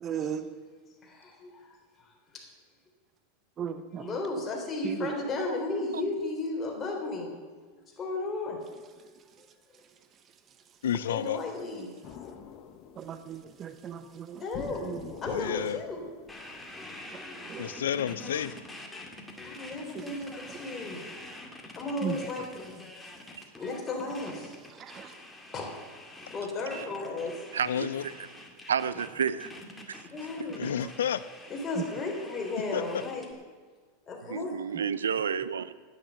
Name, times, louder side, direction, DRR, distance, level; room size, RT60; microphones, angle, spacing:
voice 1, 0.0-0.5 3.6-4.1 4.8-5.1 13.0-14.4 14.8-15.0 17.4-17.8 22.0-22.2 24.8-25.1, right 8 dB, 35° right, 10 dB, 0.8 m, -36 dB
voice 2, 1.0-2.4 4.0-7.3 8.0-8.6 11.1-11.9 14.4-14.9 15.2-16.0 19.4-21.1 21.3-21.4 21.8-22.7 23.6-24.6 25.5-25.7 26.3-27.3 30.1-30.7 31.5-33.3 34.1-34.5, left 2 dB, 25° left, 0 dB, 3.7 m, -34 dB
voice 3, 10.8-11.4 15.3-15.8 17.6-18.5 27.7-28.0 30.6-31.2 32.7-32.8, left 9 dB, 80° left, 15 dB, 0.5 m, -30 dB
sound 1, 12.0-13.5 14.5-17.0, left 8 dB, 45° left, 1.1 m, -44 dB
sound 2, 16.3-33.3, left 1 dB, 10° left, 2.0 m, -46 dB
voice 4, 27.5-28.1 28.7-29.5 29.9-30.0 30.6-30.7 34.3-35.7, right 7 dB, 85° right, 15 dB, 0.5 m, -30 dB
10.0 x 9.5 x 7.6 m, 1.5 s
hypercardioid pair, 95°, 0 cm